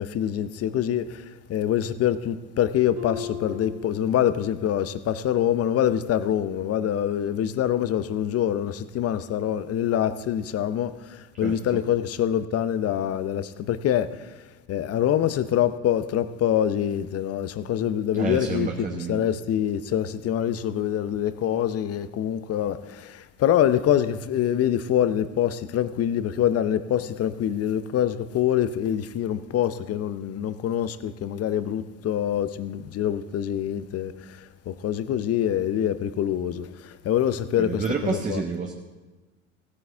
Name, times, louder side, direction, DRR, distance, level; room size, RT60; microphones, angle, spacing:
voice 1, 0.0-14.4 14.7-38.4, left 10 dB, 35° left, 0.7 m, -25 dB
Harp, 3.0-4.7 5.1-5.5 6.0-6.2, left 7 dB, 80° right, 3.7 m, -38 dB
voice 2, 11.4-11.8 18.1-19.3 37.6-38.7, right 4 dB, 20° right, 1.1 m, -29 dB
16.0 x 9.6 x 3.4 m
hypercardioid pair, 75°, 43 cm